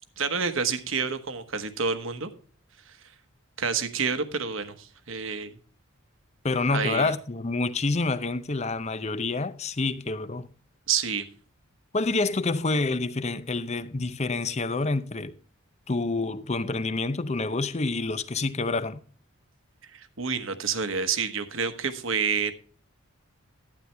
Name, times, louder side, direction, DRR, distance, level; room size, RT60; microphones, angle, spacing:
voice 1, 0.2-2.3 3.6-5.5 6.7-7.1 10.9-11.3 19.9-22.5, right 6 dB, 65° right, 1.2 m, -28 dB
voice 2, 6.4-10.5 11.9-15.4 15.9-19.0, left 3 dB, 30° left, 0.6 m, -27 dB
12.0 x 9.3 x 3.3 m
head